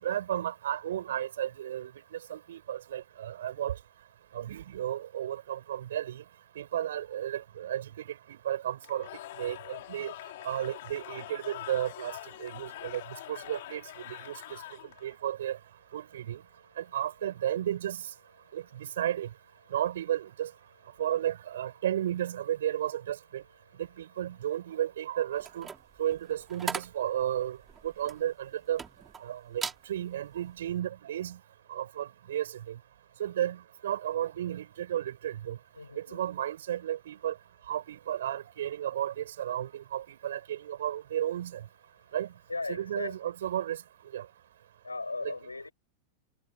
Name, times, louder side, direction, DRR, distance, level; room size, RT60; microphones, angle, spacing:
voice 1, 0.0-3.8 4.3-6.2 6.6-9.1 9.4-10.1 10.4-12.1 12.4-13.0 13.3-14.6 15.0-15.6 15.9-16.4 16.8-18.0 18.5-19.3 19.7-20.5 21.0-23.4 23.8-25.7 26.0-27.6 27.8-28.8 29.2-29.6 29.9-31.4 31.7-32.8 33.2-35.6 36.0-37.3 37.7-41.6 42.1-42.3 42.7-43.8 44.1-44.3, right 11 dB, 60° right, 5.2 m, -33 dB
Cheering / Crowd, 8.8-15.2, left 16 dB, 55° left, 6.5 m, -44 dB
voice 2, 16.3-17.0 18.4-19.0 19.6-19.7 20.9-21.0 23.5-23.8 35.7-36.2 41.9-42.2 42.5-43.3 44.8-45.7, left 3 dB, 80° left, 6.6 m, -40 dB
sound 1, 25.4-29.2 29.5-29.9 30.3-30.6, right 5 dB, 15° right, 5.5 m, -39 dB
figure-of-eight pair, 90°, 0 cm